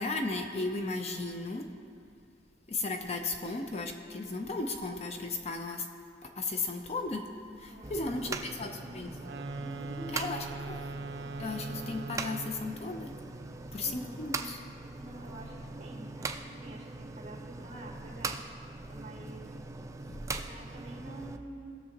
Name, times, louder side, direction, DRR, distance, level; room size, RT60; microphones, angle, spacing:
voice 1, 0.0-1.7 2.7-5.9 6.2-7.2 7.6-9.1 10.1-10.4 10.7-10.8 11.4-13.1 13.7-14.6 20.1-20.2, left 3 dB, 35° left, 4 dB, 0.6 m, -35 dB
voice 2, 7.7-9.1 9.6-10.4 13.8-14.5 15.0-18.4 18.9-19.6 20.5-21.8, right 1 dB, 40° right, -3 dB, 2.0 m, -47 dB
sound 1, 7.8-21.4, right 3 dB, 15° right, 0.4 m, -41 dB
sound 2, 9.1-12.8, right 3 dB, 70° right, 0.6 m, -41 dB
18.5 x 6.8 x 2.9 m, 2.3 s
head